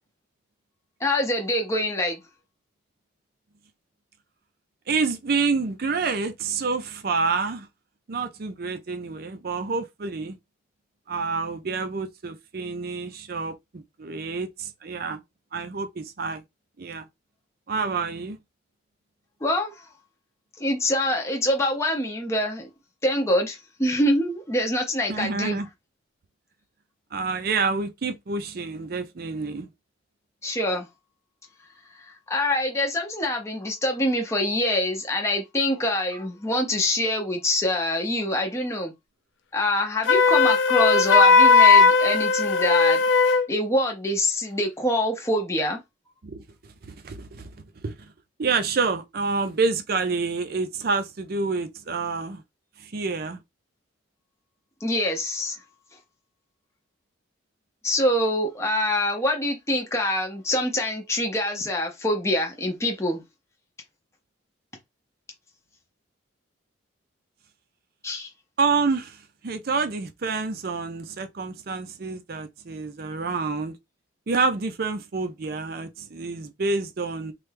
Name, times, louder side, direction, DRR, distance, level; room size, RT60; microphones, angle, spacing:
voice 1, 1.0-2.2 19.4-19.9 20.6-22.7 23.0-25.6 30.4-30.9 32.0-38.9 39.5-43.0 43.5-45.8 54.8-55.6 57.8-63.2 68.0-68.3, left 1 dB, 15° left, 0.5 m, -25 dB
voice 2, 4.9-7.7 8.1-10.4 11.1-15.2 15.5-16.4 16.8-17.0 17.7-18.4 25.1-25.7 27.1-29.7 46.2-46.4 46.8-47.5 47.8-47.9 48.4-52.4 52.8-53.4 68.6-73.8 74.3-77.3, right 4 dB, 50° right, 0.5 m, -28 dB
Wind instrument woodwind instrument, 40.0-43.5, left 4 dB, 70° left, 0.4 m, -17 dB
3.2 x 2.3 x 3.2 m
head